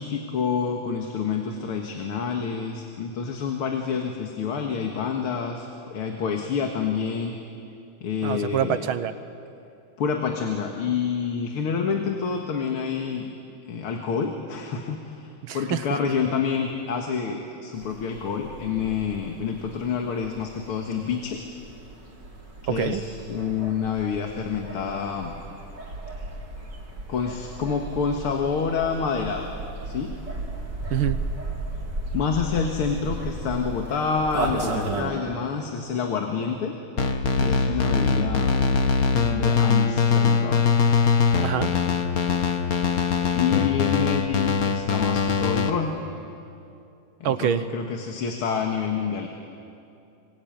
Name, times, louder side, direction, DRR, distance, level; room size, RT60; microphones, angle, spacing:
voice 1, 0.0-7.3 8.0-8.8 10.0-13.3 13.7-21.4 22.6-25.3 27.1-29.5 29.8-30.2 32.1-36.7 37.4-38.6 39.3-40.7 43.3-45.9 47.2-49.3, left 6 dB, 80° left, 3 dB, 2.5 m, -28 dB
voice 2, 8.2-9.1 15.4-16.0 22.7-23.0 30.9-31.2 41.4-41.7 47.2-47.6, right 10 dB, 75° right, 12 dB, 1.8 m, -25 dB
sound 1, 17.7-35.1, right 2 dB, 50° right, 3.9 m, -35 dB
sound 2, 37.0-45.7, left 5 dB, 45° left, 1.7 m, -22 dB
26.5 x 25.0 x 9.2 m, 2.6 s
omnidirectional pair, 2.4 m